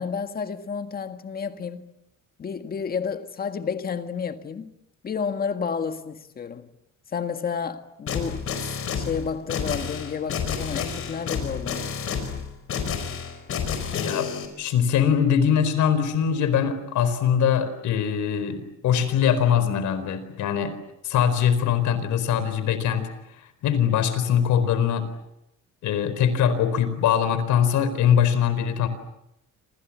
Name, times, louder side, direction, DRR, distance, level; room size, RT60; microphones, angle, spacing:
voice 1, 0.0-1.9 2.4-4.7 5.0-6.7 7.1-8.7 9.0-12.3, left 6 dB, 30° left, 1.8 m, -31 dB
sound 1, 8.1-14.5, left 6 dB, 45° left, 5.0 m, -30 dB
voice 2, 13.9-14.3 14.6-20.7 21.0-23.1 23.4-25.1 25.8-28.9, left 8 dB, 65° left, 4.5 m, -22 dB
28.0 x 28.0 x 7.4 m
cardioid pair, 170°, 31 cm